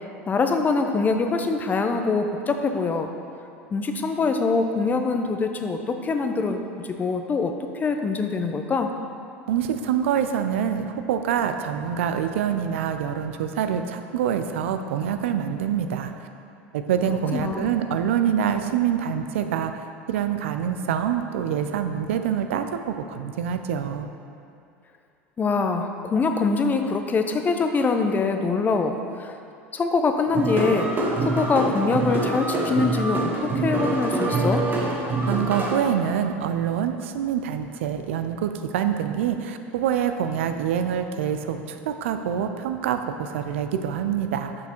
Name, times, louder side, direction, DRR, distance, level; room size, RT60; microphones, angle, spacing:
voice 1, 0.3-3.1 3.7-7.5 7.8-8.9 17.1-17.7 25.4-29.3 29.7-30.9 31.2-34.7, left 4 dB, 25° left, 6 dB, 0.5 m, -24 dB
voice 2, 9.5-16.1 16.7-19.7 20.1-24.1 35.3-44.5, right 8 dB, 80° right, 7 dB, 0.4 m, -25 dB
sound 1, 30.3-35.7, right 2 dB, 30° right, 1.1 m, -25 dB
5.8 x 4.5 x 4.4 m, 2.5 s
hypercardioid pair, 90°, 7 cm